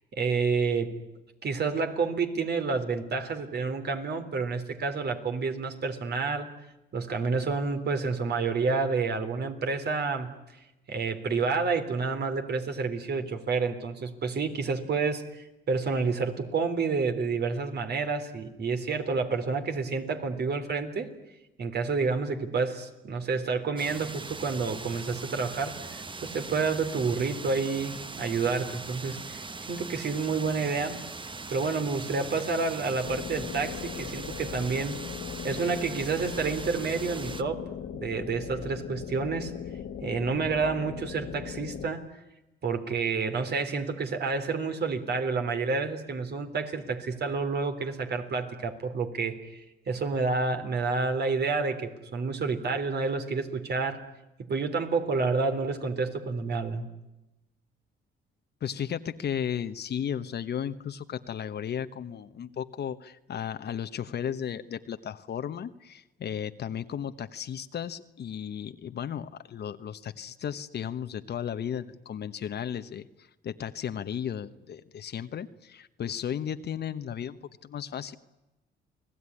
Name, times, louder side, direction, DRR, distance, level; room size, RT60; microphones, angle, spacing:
voice 1, 0.1-1.0 1.4-6.5 6.9-10.3 10.9-21.1 21.6-29.4 29.7-31.0 31.5-35.0 35.4-37.6 37.9-39.5 40.0-42.0 42.6-54.0 54.5-56.9, right 4 dB, 55° right, 7 dB, 3.8 m, -29 dB
sound 1, 23.8-37.4, right 3 dB, 25° right, 1.3 m, -40 dB
sound 2, 33.0-41.9, left 8 dB, 75° left, 1.9 m, -39 dB
voice 2, 58.6-78.2, left 8 dB, 55° left, 10 dB, 1.2 m, -35 dB
29.5 x 19.5 x 9.9 m, 0.97 s
cardioid pair, 90°, 20 cm